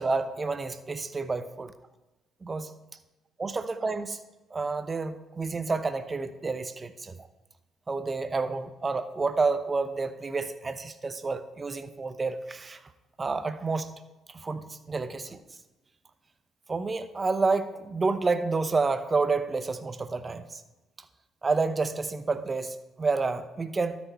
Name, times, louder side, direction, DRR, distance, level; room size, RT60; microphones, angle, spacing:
voice 1, 0.0-1.7 2.4-2.7 3.4-4.2 4.5-7.2 7.9-12.8 13.2-14.0 14.3-15.4 16.7-20.6 21.4-24.0, right 4 dB, 30° right, 11 dB, 0.9 m, -29 dB
12.5 x 6.3 x 4.2 m, 1.1 s
supercardioid pair, 60°, 0 cm